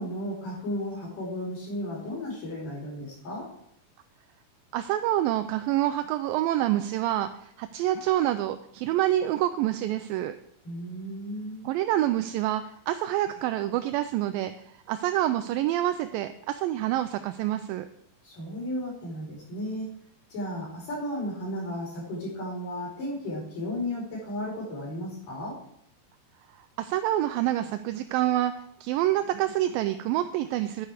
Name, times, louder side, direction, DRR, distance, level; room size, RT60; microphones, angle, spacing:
voice 1, 0.0-3.5 10.6-11.7 18.2-19.9 20.3-25.6, left 1 dB, 60° left, -4 dB, 6.2 m, -34 dB
voice 2, 4.7-10.4 11.6-14.5 14.9-17.9 26.8-28.5 28.8-30.9, right 13 dB, 80° right, 10 dB, 2.2 m, -27 dB
10.5 x 9.5 x 4.9 m, 0.71 s
omnidirectional pair, 4.3 m